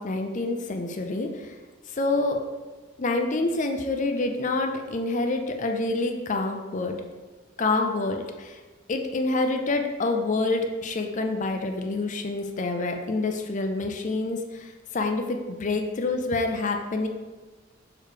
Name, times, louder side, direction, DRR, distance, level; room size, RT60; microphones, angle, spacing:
voice 1, 0.0-1.6 1.9-2.4 3.0-6.9 7.6-8.6 8.9-17.1, left 2 dB, 35° left, 5 dB, 0.5 m, -27 dB
6.6 x 3.1 x 4.9 m, 1.3 s
head